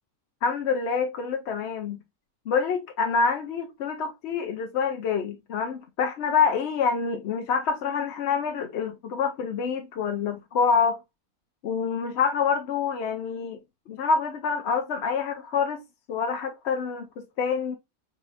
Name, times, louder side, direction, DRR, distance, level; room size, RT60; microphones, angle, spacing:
voice 1, 0.4-2.0 2.5-11.0 11.6-13.6 13.9-15.8 16.1-17.7, left 5 dB, 60° left, 0.8 m, -26 dB
5.5 x 2.8 x 2.4 m
omnidirectional pair, 1.5 m